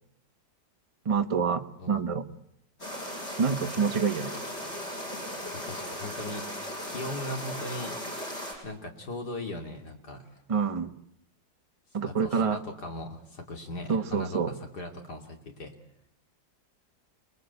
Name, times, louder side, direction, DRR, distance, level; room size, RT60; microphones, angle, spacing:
voice 1, 1.0-2.3 3.4-4.3 10.5-11.0 11.9-12.6 13.9-14.5, right 6 dB, 25° right, 7 dB, 0.9 m, -27 dB
voice 2, 1.8-2.2 5.5-6.5 6.8-8.0 8.6-10.4 12.0-15.7, left 1 dB, 60° left, 3 dB, 3.3 m, -39 dB
sound 1, 2.8-8.5, equal, 35° left, 6.3 m, -37 dB
28.5 x 21.0 x 8.2 m, 0.75 s
omnidirectional pair, 2.0 m